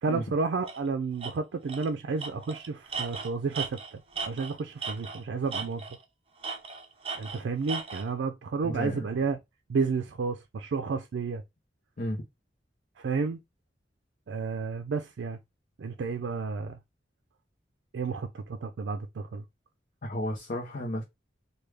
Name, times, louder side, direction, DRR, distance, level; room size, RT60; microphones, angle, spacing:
voice 1, 0.0-5.8 7.2-9.4 9.7-11.4 13.0-13.4 14.3-15.4 15.8-16.8 17.9-19.4, right 4 dB, 80° right, 0.4 m, -31 dB
Tools, 0.7-0.8 1.2-1.3 1.7-1.9 2.2-5.2 5.5-6.0 6.4-8.1, right 5 dB, 30° right, 0.6 m, -36 dB
voice 2, 8.6-9.1 12.0-12.2 20.0-21.0, equal, 50° left, 0.7 m, -33 dB
3.4 x 2.3 x 3.2 m
head